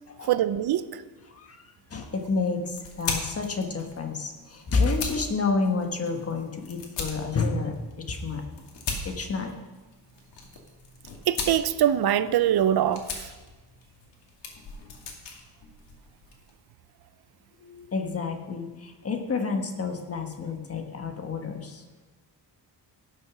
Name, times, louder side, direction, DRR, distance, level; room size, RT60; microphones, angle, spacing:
voice 1, 0.3-1.0 11.3-13.3, right 10 dB, 60° right, 14 dB, 0.6 m, -23 dB
voice 2, 1.3-8.6 9.0-9.5 17.6-21.8, left 4 dB, 35° left, 4 dB, 1.4 m, -29 dB
sound 1, 2.0-16.5, left 4 dB, 75° left, 2.4 m, -39 dB
16.0 x 6.7 x 6.1 m, 1.2 s
wide cardioid pair, 155°, 42 cm